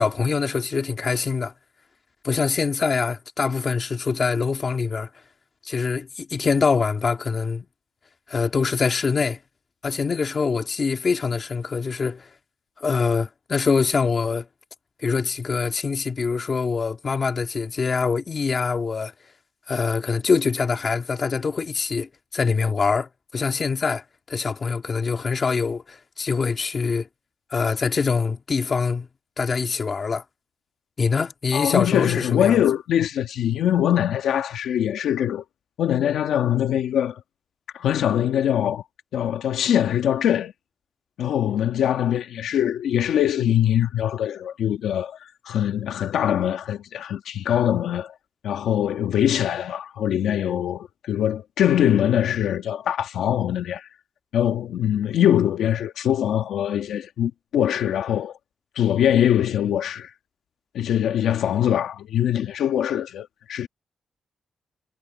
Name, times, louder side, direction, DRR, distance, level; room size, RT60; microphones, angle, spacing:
voice 1, 0.0-1.5 2.2-5.1 5.6-7.7 8.3-9.4 9.8-12.3 12.8-14.5 15.0-19.1 19.7-27.1 27.5-29.1 29.4-30.2 31.0-32.6, left 5 dB, 35° left, 2.3 m, -24 dB
voice 2, 31.5-35.4 35.8-37.2 37.7-38.8 39.1-40.5 41.2-48.1 48.4-53.9 54.3-58.4 58.7-60.1 60.7-63.7, left 10 dB, 85° left, 1.4 m, -23 dB
cardioid pair, 130°, 0 cm